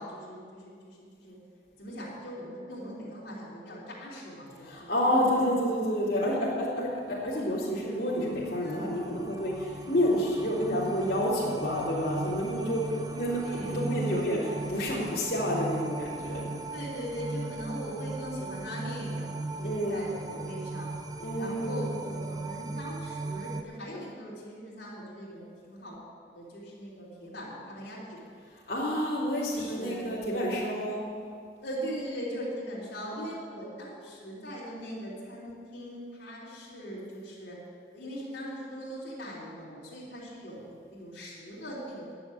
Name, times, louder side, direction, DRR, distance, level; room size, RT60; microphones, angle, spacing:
voice 1, 0.0-1.4 1.8-4.9 8.6-8.9 13.4-14.0 16.3-16.4 16.7-20.9 21.3-26.0 26.3-28.3 29.4-30.1 31.6-37.6 37.9-42.1, equal, 70° left, -7 dB, 3.3 m, -40 dB
voice 2, 4.6-16.5 19.6-20.0 21.2-21.9 28.7-31.0, equal, 55° left, -8 dB, 3.2 m, -29 dB
sound 1, 7.4-23.6, right 2 dB, 20° right, 0.5 m, -38 dB
10.5 x 7.3 x 9.6 m, 2.1 s
head